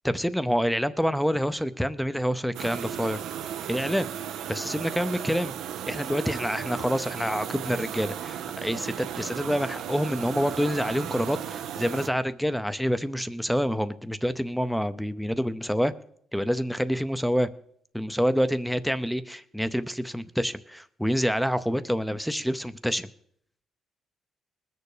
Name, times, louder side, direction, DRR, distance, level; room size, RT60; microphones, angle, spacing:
voice 1, 0.0-3.2 3.7-4.1 4.5-5.5 5.9-15.9 16.3-17.5 17.9-23.1, equal, ahead, 13 dB, 0.6 m, -27 dB
sound 1, 2.5-12.1, right 9 dB, 85° right, 0.7 m, -35 dB
20.5 x 6.9 x 4.9 m, 0.66 s
cardioid pair, 90°, 0 cm